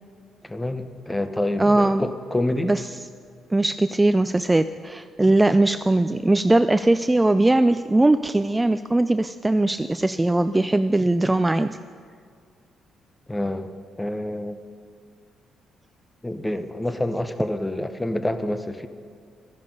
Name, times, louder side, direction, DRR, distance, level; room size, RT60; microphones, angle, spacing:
voice 1, 0.4-2.7 13.3-14.6 16.2-18.9, left 1 dB, 10° left, 10 dB, 0.7 m, -27 dB
voice 2, 1.6-2.0 2.6-3.0 3.5-11.8, right 2 dB, 15° right, 11 dB, 0.3 m, -20 dB
12.5 x 11.0 x 5.3 m, 2.1 s
cardioid pair, 90°, 0 cm